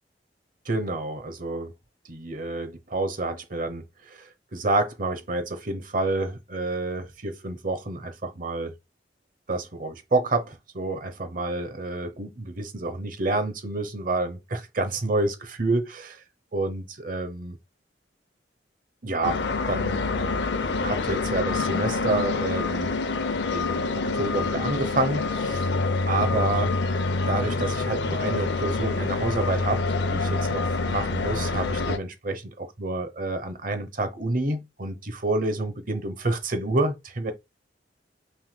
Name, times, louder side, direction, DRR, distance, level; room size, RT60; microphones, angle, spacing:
voice 1, 0.7-1.7 2.1-8.7 9.5-16.2 16.5-17.6 19.0-20.2 20.8-22.9 23.5-25.7 26.1-26.7 27.3-29.8 30.1-37.3, right 2 dB, 50° right, 0.9 m, -29 dB
sound 1, 19.2-32.0, left 3 dB, 80° left, 0.6 m, -26 dB
6.0 x 3.5 x 2.2 m
head